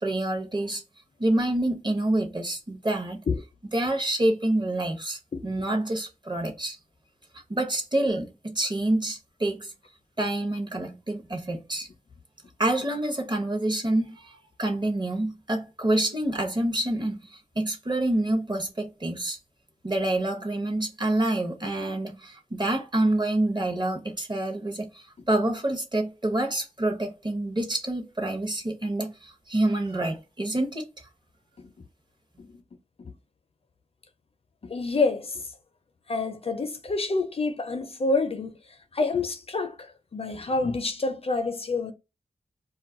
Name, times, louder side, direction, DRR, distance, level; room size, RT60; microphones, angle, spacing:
voice 1, 0.0-0.8 1.2-3.2 3.7-6.8 7.5-9.7 10.2-11.9 12.6-14.3 14.6-19.4 19.8-31.0, right 1 dB, 35° right, 0.7 m, -27 dB
voice 2, 5.3-5.7 31.6-31.7 32.4-32.5 33.0-33.1 34.6-35.5 36.1-38.5 38.9-41.9, left 3 dB, 45° left, 0.4 m, -28 dB
2.3 x 2.1 x 3.5 m
wide cardioid pair, 75°, 14 cm